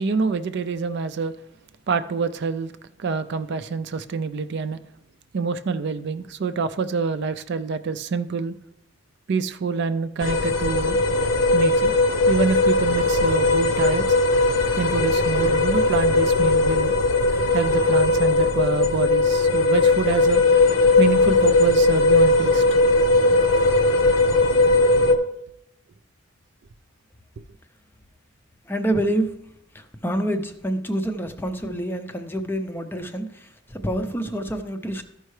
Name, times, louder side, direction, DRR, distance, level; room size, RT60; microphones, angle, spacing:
voice 1, 0.0-1.3 1.9-2.7 3.0-4.8 5.3-8.5 9.3-11.0 11.5-12.0 12.3-14.0 14.8-17.0 17.5-20.4 21.0-22.6, right 4 dB, 50° right, 0.4 m, -26 dB
sound 1, 10.2-25.1, left 2 dB, 75° left, 0.8 m, -19 dB
voice 2, 28.7-29.3 29.7-35.0, right 1 dB, 10° left, 0.5 m, -27 dB
13.5 x 5.5 x 3.2 m
head